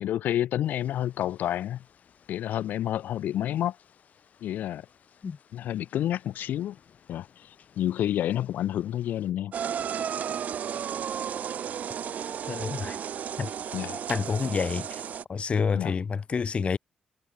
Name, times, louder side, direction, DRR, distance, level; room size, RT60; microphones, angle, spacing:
voice 1, 0.0-1.8 2.3-3.8 4.4-4.8 5.5-6.8 7.1-7.5 7.8-9.5 13.7-14.0 15.7-15.9, left 12 dB, 85° left, 0.9 m, -29 dB
sound 1, 0.6-9.3, left 8 dB, 60° left, 5.3 m, -60 dB
sound 2, 9.5-15.2, right 8 dB, 60° right, 1.3 m, -33 dB
voice 2, 12.5-13.0 13.4-13.5 14.1-15.0 15.3-16.8, left 5 dB, 40° left, 1.1 m, -28 dB
cardioid pair, 100°, 3 cm